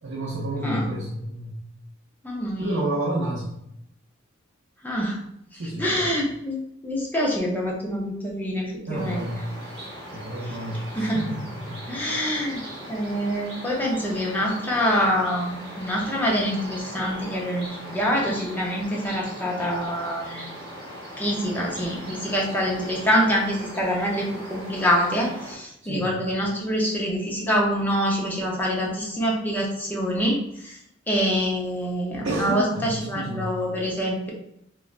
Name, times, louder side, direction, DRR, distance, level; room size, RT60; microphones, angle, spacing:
voice 1, 0.0-1.6 2.6-3.6 5.5-6.0 8.9-9.8 10.1-12.0 25.8-26.1 32.2-33.6, right 1 dB, 60° right, -5 dB, 0.6 m, -30 dB
voice 2, 2.2-2.9 4.8-5.2 5.8-6.6 6.8-9.3 11.0-11.2 11.9-12.6 12.9-20.5 21.2-30.4 30.6-30.8 31.1-34.3, equal, 10° left, -3 dB, 0.6 m, -25 dB
sound 1, 8.9-25.5, right 1 dB, 25° right, 1.1 m, -39 dB
3.0 x 2.2 x 2.4 m, 0.76 s
head